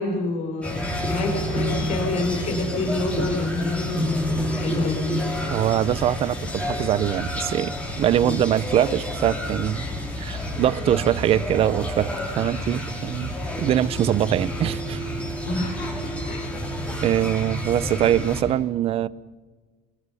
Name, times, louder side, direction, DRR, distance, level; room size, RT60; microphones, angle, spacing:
voice 1, 0.0-5.0 8.2-8.4 15.5-16.6, left 2 dB, 45° left, 4.8 m, -28 dB
sound 1, 0.6-18.4, equal, 5° left, 5.7 m, -29 dB
voice 2, 5.5-9.8 10.2-15.0 17.0-19.1, right 11 dB, 35° right, 0.7 m, -23 dB
27.5 x 24.0 x 5.7 m
cardioid pair, 155°, 17 cm